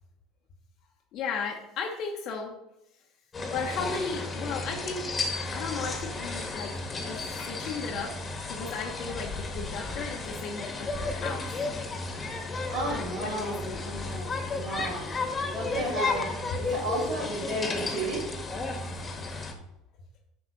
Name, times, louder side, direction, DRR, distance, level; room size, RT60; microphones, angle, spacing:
voice 1, 1.1-2.5 3.5-5.1 5.5-11.7 13.1-13.8 19.1-19.3, left 5 dB, 50° left, 0 dB, 1.3 m, -35 dB
sound 1, 3.3-19.5, left 3 dB, 25° left, 1.9 m, -33 dB
voice 2, 12.5-15.2 15.5-18.3, right 1 dB, 55° right, -9 dB, 3.7 m, -33 dB
9.7 x 5.9 x 4.1 m, 0.85 s
hypercardioid pair, 70°, 0 cm